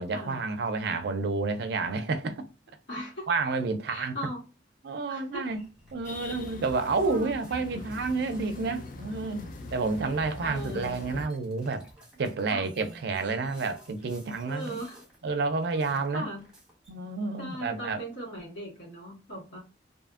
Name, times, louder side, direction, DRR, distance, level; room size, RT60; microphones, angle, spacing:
voice 1, 0.0-2.4 3.3-4.2 4.8-5.6 5.9-11.8 12.2-14.8 15.2-16.3 16.9-18.0, right 3 dB, 60° right, 0.4 m, -30 dB
voice 2, 2.9-3.3 3.9-4.4 5.1-5.4 7.0-7.3 10.4-11.0 12.5-12.7 14.5-15.0 16.1-16.4 17.4-19.6, equal, 70° left, 1.5 m, -38 dB
sound 1, 5.3-15.3 15.6-17.0, right 1 dB, 5° right, 1.4 m, -55 dB
sound 2, 6.0-11.3, left 2 dB, 45° left, 0.3 m, -42 dB
2.6 x 2.5 x 2.4 m
head